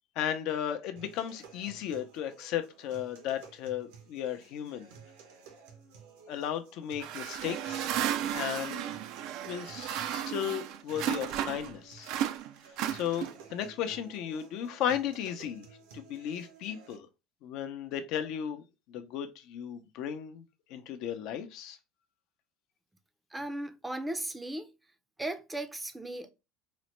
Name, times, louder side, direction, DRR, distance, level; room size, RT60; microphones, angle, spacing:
voice 1, 0.2-4.9 6.3-7.9 8.3-8.9 9.4-12.1 12.9-15.7 15.9-17.1 17.4-20.4 20.7-21.8, left 9 dB, 65° left, 0.6 m, -35 dB
sound 1, 1.0-17.0, right 6 dB, 85° right, 1.0 m, -54 dB
sound 2, 7.0-11.7 12.0-13.5, right 11 dB, 65° right, 0.4 m, -34 dB
voice 2, 23.3-24.7 25.2-26.3, right 1 dB, 10° right, 0.5 m, -36 dB
3.9 x 2.1 x 3.1 m
supercardioid pair, 105°, 0 cm